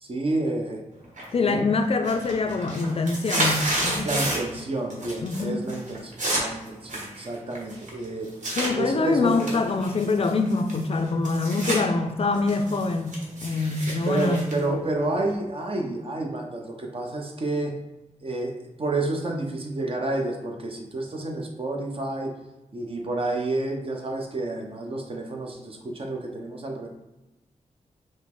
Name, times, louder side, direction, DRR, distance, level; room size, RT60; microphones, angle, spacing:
voice 1, 0.0-0.8 1.4-1.6 4.0-8.3 8.7-9.6 14.1-17.8 18.2-22.3 22.7-26.9, right 2 dB, 45° right, 1 dB, 0.8 m, -30 dB
sound 1, 1.2-1.6 1.9-4.6 4.9-5.4 5.7-8.7 9.3-11.8 12.2-15.3, right 1 dB, 70° right, 1.2 m, -30 dB
voice 2, 1.3-4.1 5.2-5.6 8.5-13.2 13.4-14.5, left 3 dB, 50° left, 7 dB, 0.4 m, -24 dB
5.1 x 2.0 x 3.7 m, 0.99 s
wide cardioid pair, 95°, 13 cm